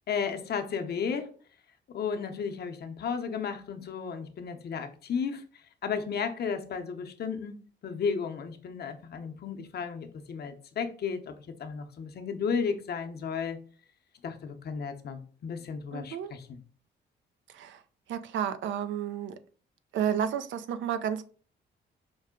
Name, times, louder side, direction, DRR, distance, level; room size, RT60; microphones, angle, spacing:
voice 1, 0.1-1.3 1.9-5.4 5.8-7.6 7.8-11.3 11.6-13.6 14.2-16.6, left 6 dB, 55° left, 6 dB, 0.7 m, -33 dB
voice 2, 15.9-16.3 17.5-17.8 18.1-19.3 19.9-21.2, right 9 dB, 70° right, 11 dB, 0.5 m, -31 dB
5.3 x 2.1 x 3.6 m, 0.42 s
cardioid pair, 90°, 20 cm